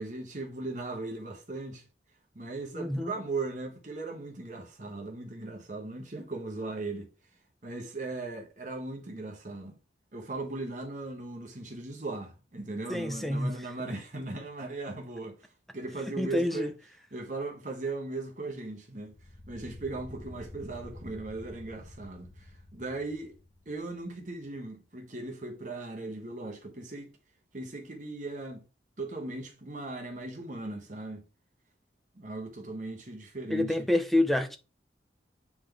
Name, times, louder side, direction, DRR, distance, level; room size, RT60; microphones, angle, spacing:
voice 1, 0.0-1.8 2.3-7.1 7.6-9.8 10.1-15.5 15.7-16.7 17.1-19.2 19.5-23.3 23.7-27.1 27.5-28.6 29.0-31.2 32.1-33.9, right 2 dB, 40° right, 1.2 m, -38 dB
voice 2, 2.7-3.1 12.9-13.7 16.1-16.7 33.5-34.6, left 1 dB, ahead, 0.6 m, -28 dB
sound 1, 19.1-24.3, left 1 dB, 45° left, 1.0 m, -49 dB
8.6 x 3.8 x 3.4 m
head